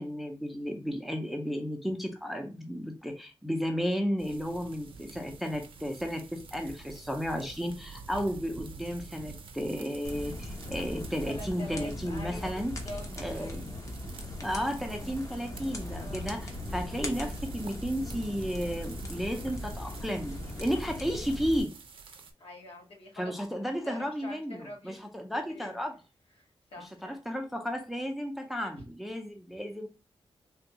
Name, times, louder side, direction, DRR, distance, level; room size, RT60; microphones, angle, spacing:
voice 1, 0.0-12.7 13.2-13.6 14.4-21.7 23.2-25.9 27.0-29.9, equal, ahead, 3 dB, 0.5 m, -33 dB
sound 1, 4.2-22.3, right 4 dB, 65° right, 0.5 m, -49 dB
sound 2, 10.0-21.6, left 1 dB, 35° left, 0.7 m, -39 dB
voice 2, 11.3-13.8 16.0-16.3 22.4-25.0 25.5-25.8 26.4-27.2, left 1 dB, 70° left, 0 dB, 1.3 m, -45 dB
3.4 x 2.3 x 2.8 m, 0.33 s
wide cardioid pair, 125°, 10 cm